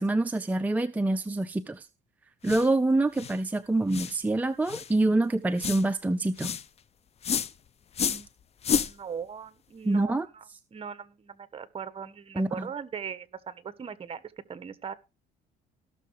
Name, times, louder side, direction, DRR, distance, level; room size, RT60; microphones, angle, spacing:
voice 1, 0.0-1.9 2.4-6.6 9.8-10.3 12.4-12.7, right 2 dB, 10° right, 0.6 m, -26 dB
sound 1, 2.4-2.7 3.2-3.4 3.9-4.2 4.7-4.9 5.6-5.8 6.4-6.6 7.2-7.5 7.9-8.3 8.6-8.9, left 7 dB, 40° left, 0.7 m, -29 dB
voice 2, 8.7-14.9, right 7 dB, 35° right, 1.3 m, -40 dB
16.5 x 6.5 x 4.8 m
cardioid pair, 110°, 17 cm